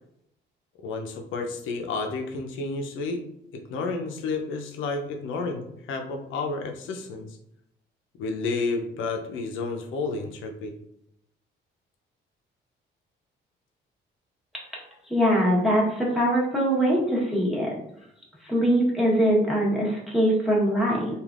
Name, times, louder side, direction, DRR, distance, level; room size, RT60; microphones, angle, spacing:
voice 1, 0.8-3.2 3.5-7.3 8.2-10.7, left 3 dB, 80° left, 4 dB, 0.6 m, -31 dB
voice 2, 15.1-17.7 18.4-21.2, equal, ahead, -5 dB, 1.1 m, -22 dB
3.3 x 2.4 x 2.4 m, 0.76 s
cardioid pair, 90°, 20 cm